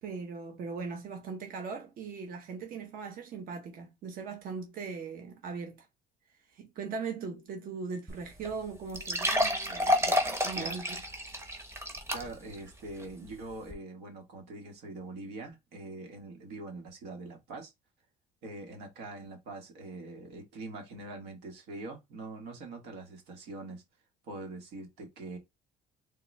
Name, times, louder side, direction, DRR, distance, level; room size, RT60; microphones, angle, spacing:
voice 1, 0.0-5.9 6.5-11.0, right 5 dB, 55° right, 0.8 m, -39 dB
sound 1, 8.1-8.2 8.4-8.5 8.9-12.5 13.0-13.1 13.7-13.8, left 1 dB, 15° right, 0.8 m, -30 dB
voice 2, 12.1-17.7 18.4-23.8 24.3-25.4, right 2 dB, 90° right, 1.3 m, -43 dB
3.8 x 2.3 x 3.1 m
cardioid pair, 110°, 17 cm